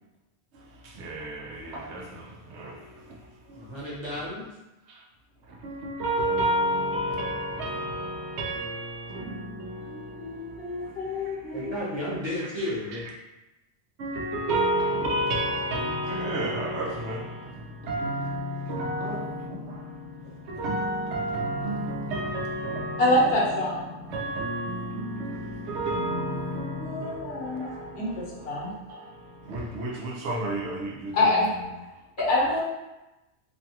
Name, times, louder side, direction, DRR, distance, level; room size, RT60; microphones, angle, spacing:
voice 1, 0.5-4.0 4.9-5.0 5.4-11.7 12.4-13.1 14.0-32.0, right 1 dB, 85° right, 0.9 m, -32 dB
voice 2, 3.5-4.5 11.5-13.0 19.0-19.2, left 1 dB, 30° right, 0.8 m, -33 dB
voice 3, 9.8-11.7 23.0-23.9 26.7-27.7 27.9-28.1 28.4-28.7 31.1-31.5 32.2-32.6, left 1 dB, 60° left, 1.0 m, -26 dB
2.6 x 2.3 x 2.7 m
omnidirectional pair, 1.1 m